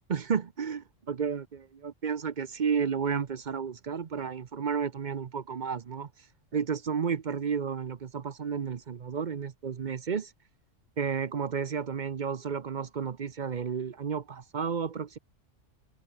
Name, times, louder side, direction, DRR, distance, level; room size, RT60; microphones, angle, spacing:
voice 1, 0.1-6.1 6.5-10.3 11.0-15.2, right 6 dB, 45° right, 0.8 m, -32 dB
omnidirectional pair, 1.3 m